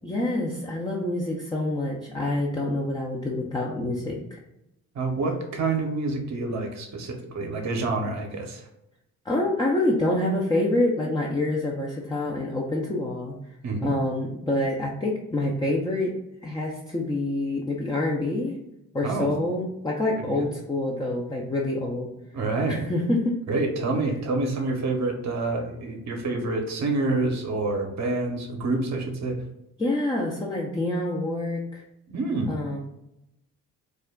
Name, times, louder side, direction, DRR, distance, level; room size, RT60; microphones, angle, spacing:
voice 1, 0.0-4.4 9.3-13.4 13.8-16.1 16.4-18.6 18.9-22.1 22.7-23.3 29.8-31.8 32.5-32.8, left 1 dB, 10° left, -2 dB, 0.5 m, -26 dB
voice 2, 4.9-8.6 13.6-13.9 19.0-19.3 20.3-20.5 22.3-22.8 23.5-29.4 32.1-32.5, right 3 dB, 40° right, 3 dB, 0.8 m, -27 dB
2.5 x 2.1 x 3.5 m, 0.85 s
hypercardioid pair, 45°, 44 cm